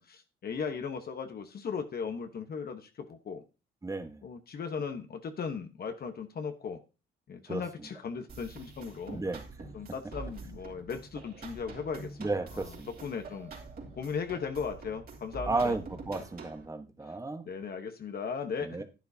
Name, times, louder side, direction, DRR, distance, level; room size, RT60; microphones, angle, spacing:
voice 1, 0.0-3.4 4.2-6.8 7.3-9.2 9.7-12.7 13.0-13.5 13.9-15.8 16.1-16.2 17.1-17.2 17.4-18.8, left 6 dB, 50° left, 1.2 m, -37 dB
voice 2, 3.8-4.2 7.5-7.6 9.1-9.7 12.2-12.9 15.5-17.4 18.6-18.8, right 3 dB, 15° right, 1.2 m, -33 dB
sound 1, 8.3-16.7, right 3 dB, 50° right, 3.2 m, -46 dB
10.5 x 9.5 x 2.8 m
cardioid pair, 90°, 20 cm